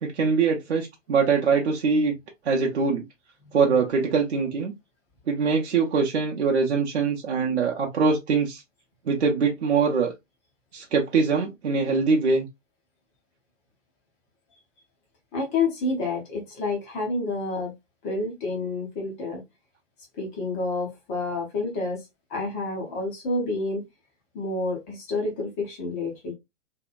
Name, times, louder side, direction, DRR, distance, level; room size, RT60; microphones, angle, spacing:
voice 1, 0.0-2.2 2.4-3.0 3.5-4.7 5.3-8.6 9.1-10.1 10.7-12.5, right 5 dB, 65° right, 0.6 m, -23 dB
voice 2, 15.3-17.7 18.0-19.4 20.2-22.0 22.3-23.8 24.3-26.3, left 3 dB, 10° left, 0.4 m, -29 dB
2.7 x 2.1 x 2.4 m
figure-of-eight pair, 115°, 36 cm